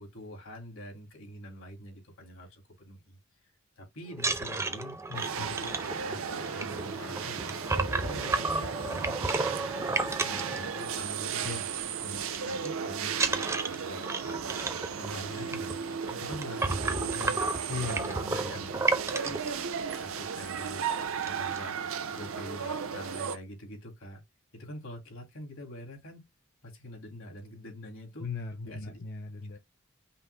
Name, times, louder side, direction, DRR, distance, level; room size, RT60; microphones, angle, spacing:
voice 1, 0.0-3.2 3.8-5.0 5.4-5.8 6.0-7.6 7.9-9.5 10.2-11.6 12.0-14.4 15.0-15.8 16.1-17.6 18.1-18.6 18.9-19.4 20.0-20.8 21.2-21.8 22.1-24.2 24.5-26.2 26.6-28.3 28.6-29.0, equal, 80° left, 2.2 m, -45 dB
sound 1, 4.1-11.3 11.6-11.8 12.1-12.7 13.1-19.5 20.2-20.3 20.6-20.8 21.0-21.6, right 3 dB, 15° right, 0.4 m, -32 dB
voice 2, 5.1-5.6 11.4-11.6 17.7-18.8 28.2-29.6, left 4 dB, 50° left, 0.7 m, -38 dB
sound 2, 5.1-23.4, right 6 dB, 80° right, 0.6 m, -35 dB
5.5 x 2.0 x 3.8 m
head